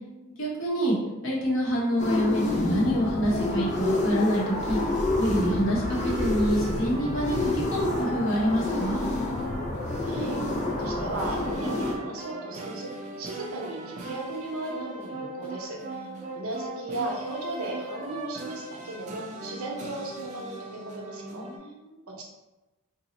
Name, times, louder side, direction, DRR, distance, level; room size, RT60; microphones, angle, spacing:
voice 1, 0.4-1.0 1.2-4.8 5.2-9.0 21.2-22.0, equal, 65° left, -5 dB, 0.9 m, -26 dB
sound 1, 2.0-12.0, left 2 dB, 35° left, 0.4 m, -28 dB
sound 2, 5.8-21.6, right 2 dB, 35° right, 0.4 m, -40 dB
voice 2, 10.0-16.1 16.3-21.5 22.1-22.3, right 2 dB, 90° right, 0 dB, 0.7 m, -36 dB
2.7 x 2.0 x 3.8 m, 1.1 s
head